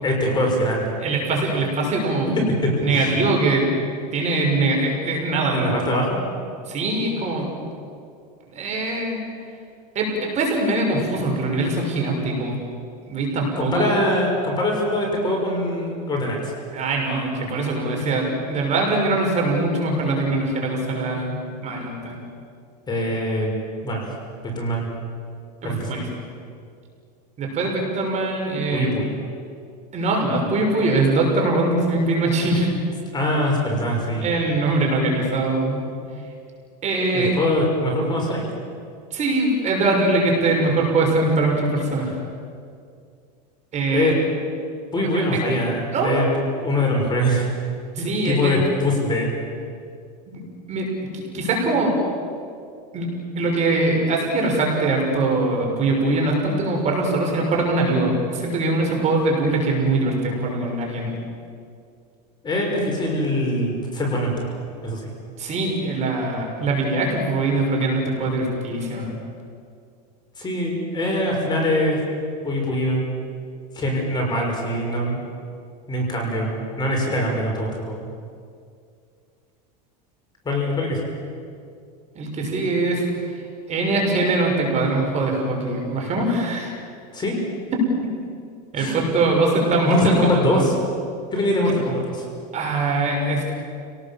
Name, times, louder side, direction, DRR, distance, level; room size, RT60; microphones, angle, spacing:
voice 1, 0.0-1.0 2.6-3.2 5.5-6.2 13.6-16.5 22.9-23.5 23.8-24.1 24.6-24.9 25.6-26.1 28.7-29.1 33.1-34.2 37.1-38.5 43.9-44.1 44.9-47.5 48.0-49.3 62.4-65.1 70.4-72.0 72.4-73.0 73.7-75.2 75.9-78.0 80.4-81.0 87.1-87.4 88.8-89.0 89.8-90.7 91.3-92.2, left 1 dB, 20° left, 0 dB, 6.1 m, -23 dB
voice 2, 1.0-2.3 2.8-3.7 4.1-5.9 6.7-7.5 8.5-9.2 9.9-12.6 13.1-13.9 16.7-21.4 21.6-22.2 25.6-26.1 27.4-28.9 29.9-32.7 34.2-35.9 36.8-37.3 39.1-42.2 43.7-44.1 45.0-45.4 45.9-46.2 48.0-48.6 50.3-51.9 52.9-61.1 65.4-69.1 82.1-83.0 83.7-86.7 87.7-88.1 88.7-90.7 92.5-93.4, right 2 dB, 35° right, 0 dB, 6.3 m, -22 dB
29.5 x 19.0 x 7.5 m, 2.3 s
supercardioid pair, 125°, 21 cm